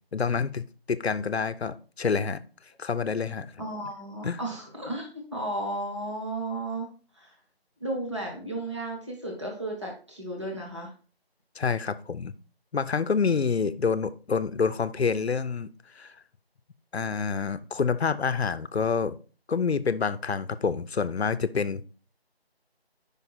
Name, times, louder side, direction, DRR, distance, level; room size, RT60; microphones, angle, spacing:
voice 1, 0.1-2.4 2.8-3.5 4.2-4.4 11.6-12.3 12.7-15.7 15.9-16.1 16.9-19.1 19.5-21.9, left 5 dB, 80° left, 14 dB, 0.6 m, -27 dB
voice 2, 3.6-6.9 7.1-7.4 7.8-10.9, right 1 dB, 30° right, -1 dB, 1.0 m, -34 dB
5.3 x 4.9 x 4.1 m, 0.37 s
figure-of-eight pair, 175°, 31 cm